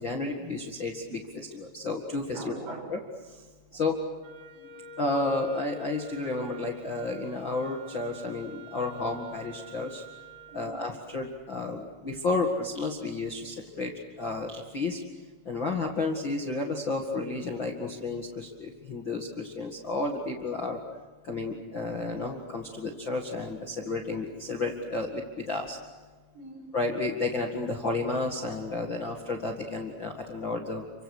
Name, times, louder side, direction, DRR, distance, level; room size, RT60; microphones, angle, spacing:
voice 1, 0.0-2.5 2.9-3.0 3.7-4.0 5.0-10.0 10.5-13.9 14.2-15.0 15.4-20.8 21.2-25.8 26.7-30.8, left 3 dB, 60° left, 1 dB, 1.2 m, -32 dB
voice 2, 2.3-3.0 3.7-4.0 4.5-4.8 10.5-10.9 26.3-26.8, right 3 dB, 85° right, 1 dB, 8.8 m, -43 dB
Wind instrument woodwind instrument, 4.2-10.7, right 3 dB, 65° right, 4.4 m, -47 dB
30.0 x 25.5 x 6.6 m, 1.3 s
omnidirectional pair, 5.8 m